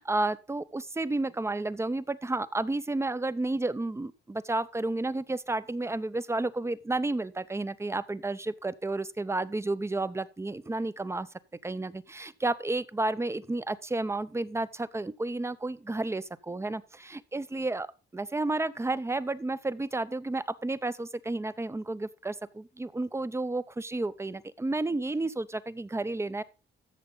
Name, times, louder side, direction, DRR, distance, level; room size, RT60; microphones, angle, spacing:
voice 1, 0.0-11.3 11.6-26.4, right 2 dB, 15° right, 0.6 m, -31 dB
13.5 x 6.6 x 3.9 m
cardioid pair, 90°, 20 cm